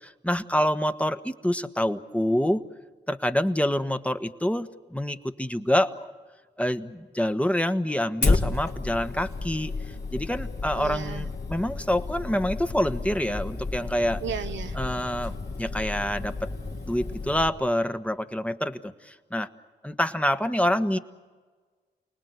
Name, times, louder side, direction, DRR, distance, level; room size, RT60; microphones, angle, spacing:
voice 1, 0.0-2.6 3.1-6.1 6.6-9.7 10.1-14.2 14.7-16.5 16.9-19.5 19.8-21.0, equal, 5° left, 9 dB, 1.3 m, -27 dB
Fire, 8.2-17.5, left 3 dB, 60° left, 3.5 m, -31 dB
voice 2, 10.7-11.2 14.2-14.7, right 8 dB, 80° right, 8 dB, 1.1 m, -34 dB
29.5 x 19.5 x 8.2 m, 1.4 s
cardioid pair, 50°, 19 cm